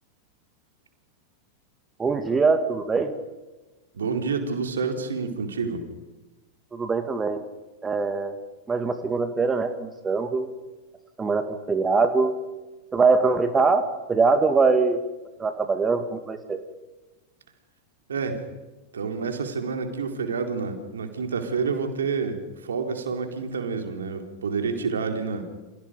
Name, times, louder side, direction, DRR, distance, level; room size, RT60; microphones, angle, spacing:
voice 1, 2.0-3.1 6.7-7.4 7.8-8.4 8.7-10.5 11.2-12.4 12.9-15.0 15.4-16.6, right 4 dB, 15° right, 8 dB, 2.0 m, -23 dB
voice 2, 3.9-5.8 18.1-18.4 18.9-25.5, right 5 dB, 65° right, 5 dB, 4.3 m, -28 dB
30.0 x 28.5 x 5.4 m, 1.1 s
figure-of-eight pair, 90°, 0 cm